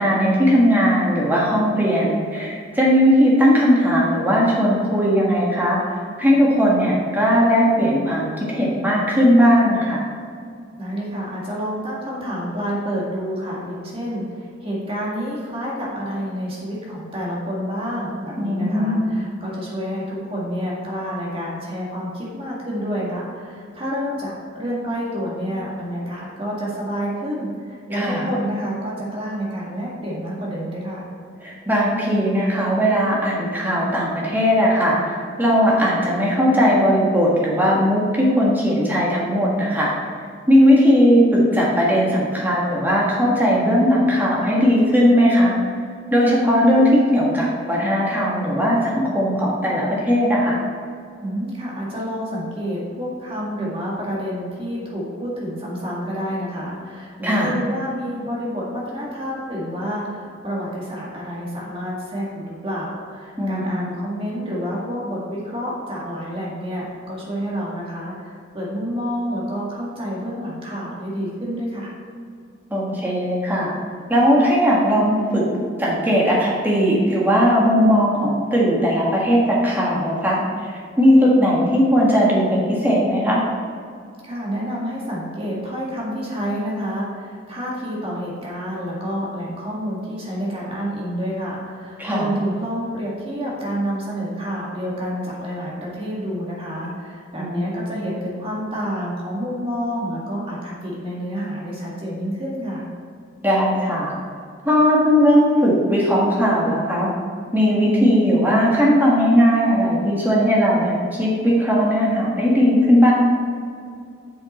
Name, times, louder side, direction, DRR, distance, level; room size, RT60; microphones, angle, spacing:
voice 1, 0.0-5.8 6.2-10.0 18.4-19.1 27.9-28.3 31.4-39.9 40.5-45.5 46.1-50.6 57.2-57.5 63.4-63.9 72.7-73.7 74.1-75.4 75.8-80.7 81.0-83.4 92.0-92.3 97.4-97.8 103.4-104.1 104.6-107.1 107.5-113.1, equal, 10° right, -5 dB, 1.6 m, -18 dB
voice 2, 10.8-31.1 51.2-71.9 84.2-102.9, equal, 30° right, -5 dB, 2.0 m, -28 dB
7.6 x 5.8 x 4.3 m, 2.2 s
head